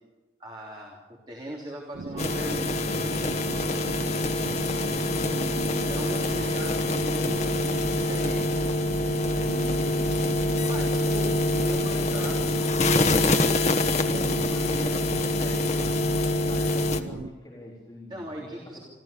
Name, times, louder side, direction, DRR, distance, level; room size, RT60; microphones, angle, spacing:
voice 1, 0.4-1.0 1.3-2.9 5.3-8.5 9.3-9.8 10.6-13.3 18.1-18.8, right 1 dB, 25° right, -2 dB, 3.2 m, -39 dB
sound 1, 1.9-17.3, right 3 dB, 80° right, 0.6 m, -38 dB
sound 2, 2.2-17.0, left 2 dB, 40° left, 1.2 m, -25 dB
voice 2, 9.2-10.1 14.0-18.5 18.7-18.8, equal, 20° left, -5 dB, 4.1 m, -41 dB
26.0 x 15.0 x 6.9 m, 1.1 s
head